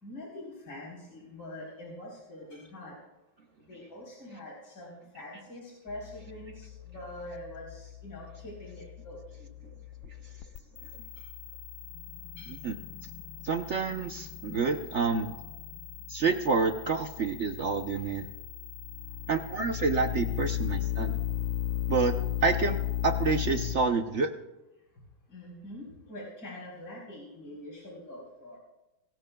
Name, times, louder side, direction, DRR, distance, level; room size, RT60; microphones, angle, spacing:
voice 1, 0.0-2.9 3.7-9.5 12.4-12.5 25.3-28.6, left 1 dB, 55° left, -5 dB, 4.6 m, -44 dB
sound 1, 5.9-23.8, left 12 dB, 75° left, 1.5 m, -37 dB
voice 2, 13.4-15.4 16.1-18.3 19.3-21.2 21.9-22.1 22.4-24.3, right 4 dB, 65° right, 5 dB, 0.7 m, -28 dB
25.5 x 19.5 x 2.3 m, 1.0 s
omnidirectional pair, 2.2 m